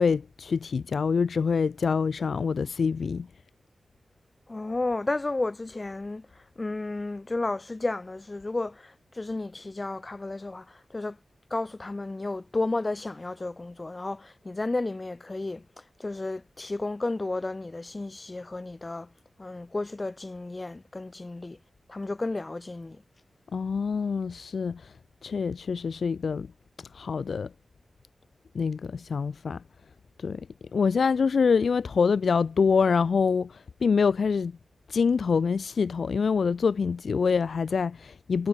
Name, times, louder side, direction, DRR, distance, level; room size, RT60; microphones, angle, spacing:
voice 1, 0.0-3.3 23.5-24.8 25.2-26.5 26.9-27.5 28.5-29.6 30.2-30.4 30.7-34.6 34.9-38.5, left 5 dB, 75° left, 2.3 m, -25 dB
voice 2, 4.5-11.2 11.5-19.1 19.4-21.6 21.9-23.0, left 2 dB, 30° left, 7.0 m, -32 dB
wide cardioid pair, 75°, 0 cm